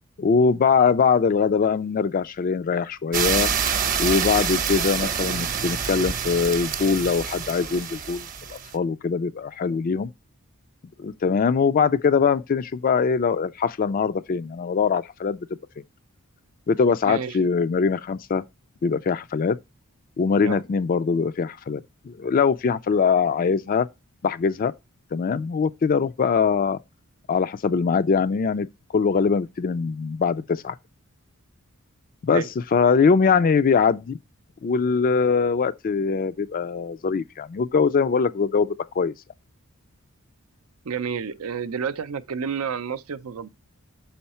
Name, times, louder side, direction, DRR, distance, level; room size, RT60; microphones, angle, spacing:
voice 1, 0.2-3.5 4.0-10.1 11.0-15.4 16.7-18.4 18.8-19.6 20.2-21.8 22.1-23.9 24.2-24.7 25.1-26.8 27.3-28.7 28.9-30.8 32.2-34.2 34.6-39.1, left 5 dB, 40° left, 0.3 m, -22 dB
sound 1, 3.1-8.7, right 7 dB, 40° right, 0.9 m, -27 dB
voice 2, 17.1-17.4 20.4-20.6 32.3-32.5 40.8-43.5, right 6 dB, 80° right, 0.5 m, -30 dB
6.2 x 5.7 x 4.2 m
head